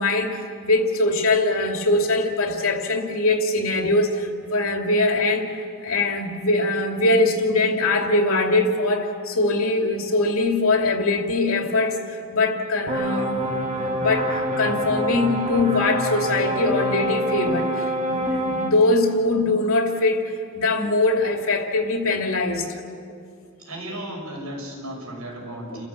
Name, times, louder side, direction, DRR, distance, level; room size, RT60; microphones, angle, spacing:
voice 1, 0.0-5.5 5.8-22.8 25.7-25.8, left 2 dB, 70° left, 2 dB, 2.7 m, -22 dB
sound 1, 12.9-18.7, equal, 30° right, 2.4 m, -26 dB
voice 2, 23.6-25.9, right 1 dB, 85° right, -1 dB, 6.4 m, -35 dB
30.0 x 15.0 x 8.3 m, 2.4 s
head